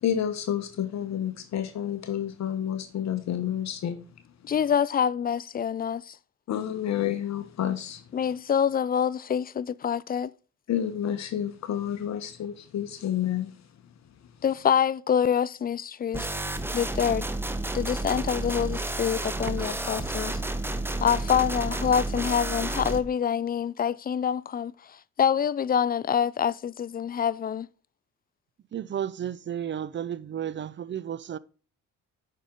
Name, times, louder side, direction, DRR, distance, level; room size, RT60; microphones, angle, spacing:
voice 1, 0.0-4.0 6.5-8.0 10.7-13.5, left 10 dB, 65° left, 1.0 m, -29 dB
voice 2, 4.4-6.2 8.1-10.3 14.4-16.3 16.7-17.3 17.7-20.4 21.0-27.7, left 8 dB, 30° left, 0.4 m, -26 dB
sound 1, 16.1-23.0, right 2 dB, 5° right, 0.9 m, -31 dB
voice 3, 28.7-31.4, right 9 dB, 40° right, 0.6 m, -33 dB
9.2 x 5.8 x 3.7 m
cardioid pair, 90°, 30 cm